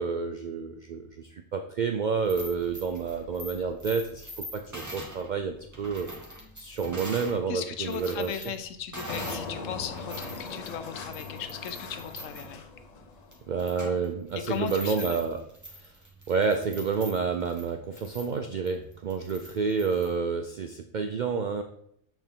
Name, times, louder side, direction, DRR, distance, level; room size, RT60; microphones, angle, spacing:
voice 1, 0.0-6.1 6.5-8.4 13.5-15.4 15.7-16.0 16.3-21.6, right 5 dB, 85° right, 6 dB, 0.4 m, -29 dB
sound 1, 2.1-7.4 7.7-9.5 9.9-20.1, equal, 15° right, 1.2 m, -43 dB
voice 2, 7.5-12.6 14.4-15.2, left 8 dB, 75° left, 10 dB, 1.0 m, -37 dB
Engine, 9.1-13.6, left 4 dB, 45° left, 0.6 m, -40 dB
7.9 x 4.4 x 3.6 m, 0.69 s
omnidirectional pair, 1.4 m